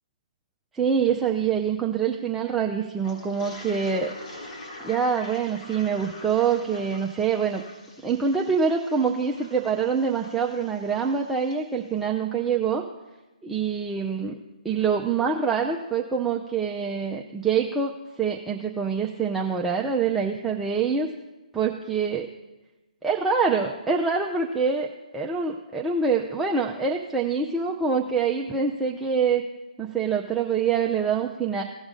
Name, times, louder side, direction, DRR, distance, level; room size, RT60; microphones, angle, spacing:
voice 1, 0.7-4.1 4.8-7.6 8.0-12.8 13.4-14.4 14.6-17.9 18.2-21.1 21.5-22.3 23.0-24.9 25.1-29.4 29.8-31.6, right 6 dB, 5° right, -1 dB, 0.6 m, -25 dB
Toilet flush, 3.0-11.6, left 1 dB, 65° left, 4.4 m, -45 dB
17.5 x 6.0 x 3.8 m, 1.1 s
figure-of-eight pair, 140°, 4 cm